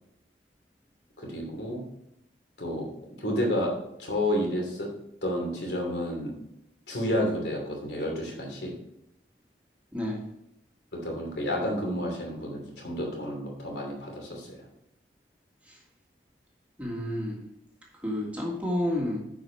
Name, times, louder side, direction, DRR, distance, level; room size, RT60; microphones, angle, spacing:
voice 1, 1.2-1.8 2.6-2.9 3.2-3.7 4.0-4.9 5.2-6.3 6.9-8.7 10.9-14.7, left 1 dB, 80° left, 0 dB, 2.8 m, -30 dB
voice 2, 9.9-10.2 15.6-15.8 16.8-17.4 17.9-19.2, left 1 dB, 10° right, -3 dB, 1.7 m, -30 dB
10.0 x 4.9 x 4.5 m, 0.80 s
head